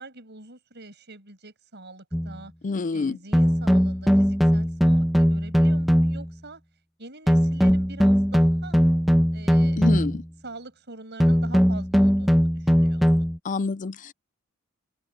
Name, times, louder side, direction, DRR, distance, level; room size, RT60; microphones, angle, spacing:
voice 1, 0.0-2.5 2.9-6.6 7.0-8.8 9.3-9.9 10.4-13.3, right 2 dB, 55° right, 7.7 m, -44 dB
sound 1, 2.1-2.4 3.3-6.3 7.3-10.3 11.2-13.4, equal, ahead, 1.3 m, -20 dB
voice 2, 2.6-3.2 9.8-10.2 13.4-14.1, left 4 dB, 40° left, 0.4 m, -27 dB
open air
head